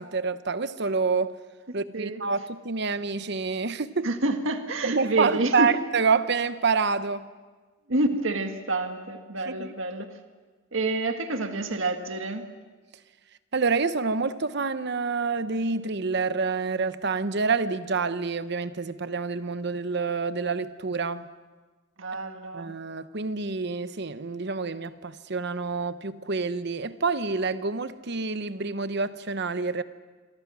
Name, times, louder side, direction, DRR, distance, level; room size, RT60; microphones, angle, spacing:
voice 1, 0.0-1.4 1.7-4.1 4.8-7.3 9.5-9.7 13.5-21.2 22.5-29.8, right 4 dB, 55° right, 0.9 m, -27 dB
voice 2, 4.0-5.7 7.9-10.1 10.7-12.4 22.0-22.7, right 2 dB, 70° right, 1.8 m, -28 dB
26.5 x 23.5 x 6.3 m
head